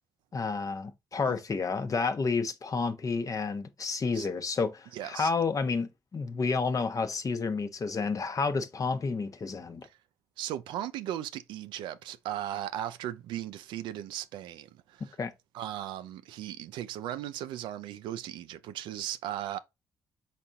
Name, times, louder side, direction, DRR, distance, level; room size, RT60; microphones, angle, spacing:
voice 1, 0.3-9.9 15.2-15.3, left 4 dB, 45° left, 0.8 m, -30 dB
voice 2, 4.9-5.3 10.4-15.1 15.5-19.6, right 12 dB, 85° right, 0.4 m, -37 dB
4.3 x 4.1 x 2.5 m
supercardioid pair, 50°, 8 cm